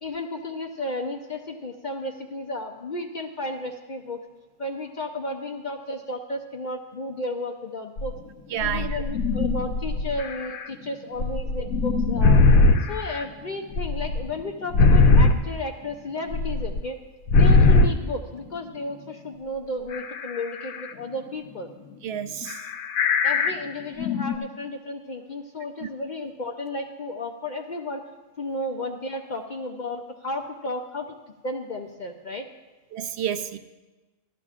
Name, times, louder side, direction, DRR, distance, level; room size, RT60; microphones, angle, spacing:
voice 1, 0.0-4.2 4.6-8.2 8.6-12.4 12.9-17.0 17.4-21.7 23.2-28.0 28.4-31.1 31.4-32.5, left 1 dB, 50° left, 0.5 m, -33 dB
sound 1, 8.0-8.1 8.6-10.7 11.2-13.2 13.8-15.4 16.3-16.8 17.3-17.9 18.7-18.8 19.9-20.9 22.4-23.5 23.8-24.4, left 3 dB, 90° left, 1.1 m, -20 dB
voice 2, 8.5-9.0 22.0-22.7 25.8-25.9 32.9-33.6, right 9 dB, 65° right, 0.7 m, -30 dB
15.5 x 12.5 x 2.4 m
omnidirectional pair, 1.4 m